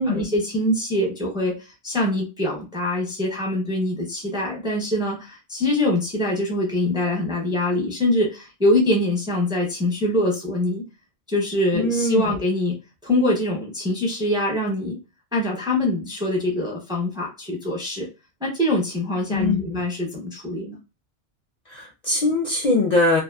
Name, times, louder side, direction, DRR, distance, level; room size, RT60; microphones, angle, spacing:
voice 1, 0.0-10.8 11.3-12.8 13.0-15.0 15.3-18.1 18.4-20.8, left 1 dB, 5° right, -2 dB, 0.5 m, -24 dB
voice 2, 11.7-12.4 19.3-19.8 21.7-23.2, left 2 dB, 50° left, -2 dB, 0.5 m, -22 dB
2.8 x 2.2 x 2.2 m, 0.29 s
omnidirectional pair, 1.1 m